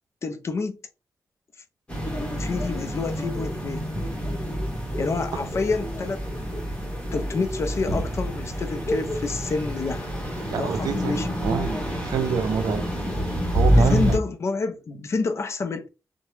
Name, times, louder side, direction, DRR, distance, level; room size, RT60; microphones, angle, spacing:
voice 1, 0.2-0.8 2.4-3.8 5.0-6.2 7.1-10.1 10.6-11.3 13.7-15.9, left 4 dB, 45° left, 0.5 m, -28 dB
sound 1, 1.9-14.2, equal, 15° left, 1.2 m, -27 dB
voice 2, 10.5-12.9 13.5-14.2, right 7 dB, 80° right, 0.4 m, -28 dB
2.8 x 2.1 x 3.1 m
wide cardioid pair, 120°, 7 cm